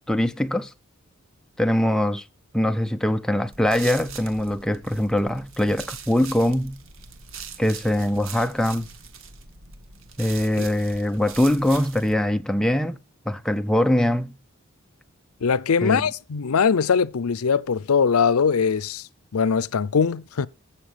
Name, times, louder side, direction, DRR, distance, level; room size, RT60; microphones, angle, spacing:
voice 1, 0.1-0.7 1.6-2.2 2.5-6.8 7.6-8.9 10.2-13.0 13.3-14.4 15.8-16.0, left 1 dB, 5° left, 0.6 m, -22 dB
sound 1, 3.5-12.1, right 6 dB, 65° right, 1.7 m, -41 dB
voice 2, 15.4-20.5, left 6 dB, 85° left, 0.6 m, -21 dB
15.0 x 6.9 x 5.0 m
head